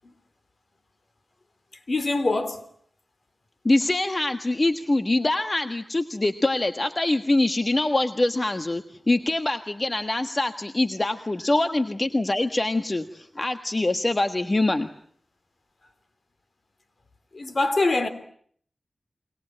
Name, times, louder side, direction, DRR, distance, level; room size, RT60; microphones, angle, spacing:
voice 1, 1.9-2.7 17.3-18.1, left 2 dB, 55° left, 3.3 m, -24 dB
voice 2, 3.6-14.9, left 2 dB, 35° left, 1.5 m, -24 dB
29.5 x 23.0 x 8.8 m
cardioid pair, 45°, 0 cm